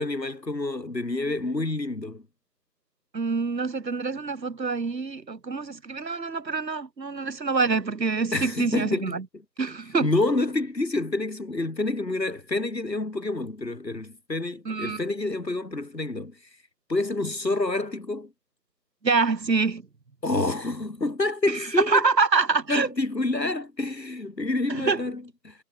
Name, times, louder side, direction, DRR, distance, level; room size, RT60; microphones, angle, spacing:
voice 1, 0.0-2.2 8.3-9.2 10.0-16.3 16.9-18.3 20.2-22.1 22.7-25.5, left 2 dB, 85° left, 4.2 m, -28 dB
voice 2, 3.1-9.2 9.6-10.1 14.6-15.0 19.0-19.8 21.9-22.9 24.7-25.0, right 4 dB, 85° right, 1.5 m, -26 dB
figure-of-eight pair, 170°, 49 cm